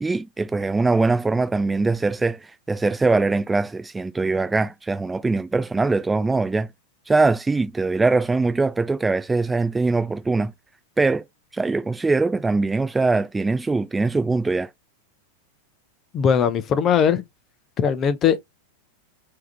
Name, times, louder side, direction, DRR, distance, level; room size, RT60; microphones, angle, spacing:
voice 1, 0.0-6.7 7.1-10.5 11.0-11.2 11.5-14.7, right 3 dB, 10° right, 0.3 m, -22 dB
voice 2, 16.1-17.2 17.8-18.4, left 7 dB, 30° left, 0.6 m, -19 dB
3.5 x 2.8 x 3.3 m
figure-of-eight pair, 90°, 0 cm